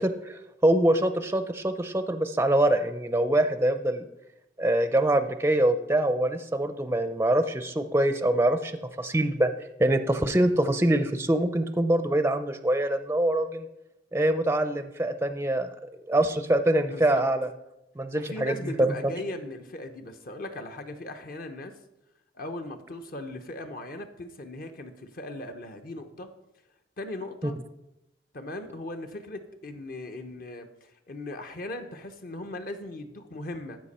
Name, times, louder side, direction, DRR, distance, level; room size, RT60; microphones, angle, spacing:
voice 1, 0.0-4.1 4.6-8.7 9.0-9.5 9.8-13.7 14.1-15.7 16.1-17.5 18.0-19.1, right 1 dB, 15° right, 10 dB, 0.4 m, -24 dB
voice 2, 16.9-17.2 18.1-21.7 22.3-26.3 27.0-27.6 28.3-33.8, left 1 dB, 55° left, 7 dB, 0.8 m, -38 dB
13.5 x 5.3 x 4.2 m, 0.89 s
head